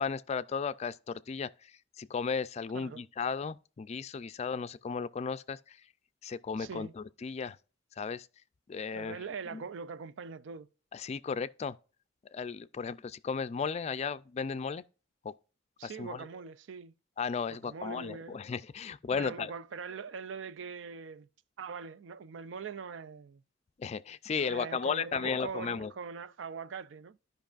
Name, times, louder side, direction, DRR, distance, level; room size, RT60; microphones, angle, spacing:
voice 1, 0.0-1.7 2.0-5.8 6.2-7.6 8.0-8.3 8.7-9.2 9.5-9.6 10.9-11.8 12.3-14.8 15.2-15.3 15.8-16.2 17.2-19.5 23.8-25.9, left 5 dB, 35° left, 0.3 m, -35 dB
voice 2, 2.7-3.0 6.6-6.9 8.9-10.7 15.8-16.9 17.5-18.4 19.1-21.3 21.6-23.4 24.3-27.2, right 5 dB, 80° right, 0.4 m, -42 dB
13.0 x 5.3 x 2.4 m
head